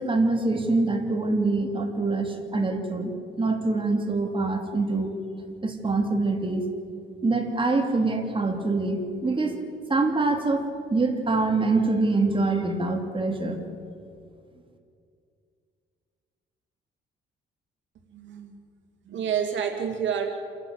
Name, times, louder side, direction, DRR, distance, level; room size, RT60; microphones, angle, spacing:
voice 1, 0.0-5.2 5.6-6.7 7.2-9.6 9.9-10.6 10.9-13.6, right 3 dB, 25° right, 3 dB, 3.1 m, -25 dB
voice 2, 18.1-18.5 19.1-20.3, right 8 dB, 70° right, 4 dB, 2.3 m, -28 dB
28.0 x 12.0 x 8.9 m, 2.3 s
cardioid pair, 90°, 20 cm